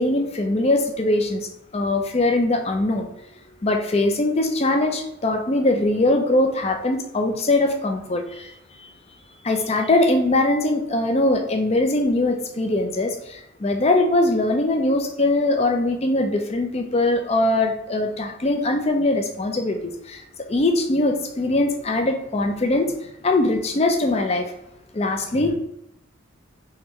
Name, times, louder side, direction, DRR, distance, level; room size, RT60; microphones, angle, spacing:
voice 1, 0.0-3.1 3.6-8.5 9.4-20.2 20.5-22.9 23.2-24.5 24.9-25.6, left 2 dB, 30° left, 5 dB, 0.4 m, -21 dB
3.6 x 3.3 x 3.0 m, 0.83 s
head